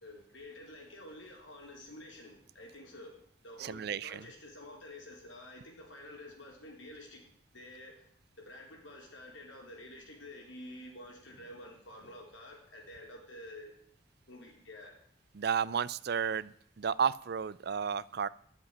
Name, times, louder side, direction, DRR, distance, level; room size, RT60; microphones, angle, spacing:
voice 1, 0.0-3.2 3.4-7.2 7.5-8.1 8.4-13.7 14.3-14.9, left 1 dB, 80° left, 0 dB, 4.2 m, -49 dB
voice 2, 3.6-4.3 15.3-18.3, right 7 dB, 55° right, 19 dB, 0.4 m, -32 dB
11.0 x 7.6 x 9.8 m, 0.63 s
head